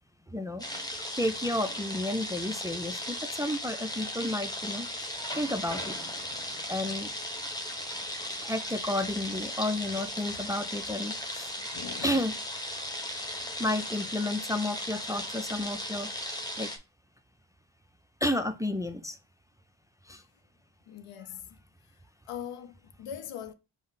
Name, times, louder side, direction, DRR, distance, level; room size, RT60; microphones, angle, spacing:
voice 1, 0.3-0.6 1.2-4.9 5.4-5.9 6.7-7.1 8.4-11.5 12.0-12.3 13.6-16.1 16.6-16.7 18.2-19.2 20.1-20.2, left 1 dB, 5° right, 0.4 m, -31 dB
sound 1, 0.6-16.8, left 1 dB, 10° left, 0.9 m, -37 dB
voice 2, 11.6-12.3 20.9-21.6 22.3-23.5, left 9 dB, 85° left, 0.6 m, -41 dB
5.2 x 2.1 x 3.9 m
cardioid pair, 60°, 50 cm